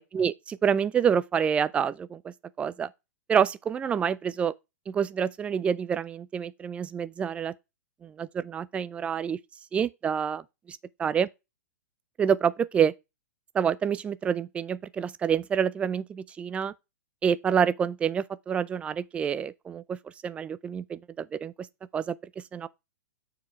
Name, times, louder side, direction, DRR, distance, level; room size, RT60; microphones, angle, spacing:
voice 1, 0.1-2.9 3.3-4.5 4.9-7.5 8.0-9.4 9.7-11.3 12.2-12.9 13.5-16.7 17.2-20.0 20.2-21.7 21.9-22.2 22.5-22.7, right 7 dB, 15° right, 0.3 m, -27 dB
7.0 x 4.7 x 4.4 m
figure-of-eight pair, 110°, 9 cm